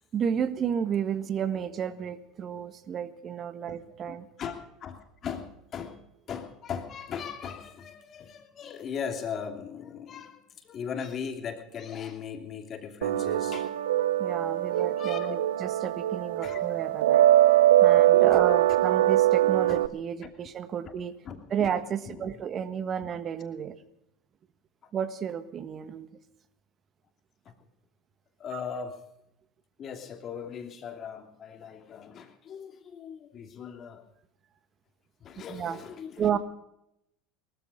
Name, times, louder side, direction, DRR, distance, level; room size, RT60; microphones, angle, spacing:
voice 1, 0.1-4.3 14.2-17.3 17.8-21.1 21.5-23.7 24.9-26.1 28.5-28.6 35.5-35.8 36.2-36.4, right 8 dB, 40° right, 12 dB, 1.5 m, -32 dB
voice 2, 4.4-6.0 6.3-13.7 14.7-15.5 16.4-16.6 18.3-18.8 19.7-19.8 21.2-21.7 22.1-22.4 23.0-23.1 24.8-24.9 27.4-27.5 28.4-29.0 29.8-34.0 35.2-36.4, left 7 dB, 40° left, 5 dB, 2.7 m, -39 dB
sound 1, 13.0-19.9, right 13 dB, 85° right, 0.5 m, -22 dB
19.0 x 13.5 x 5.2 m, 0.80 s
hypercardioid pair, 85°, 0 cm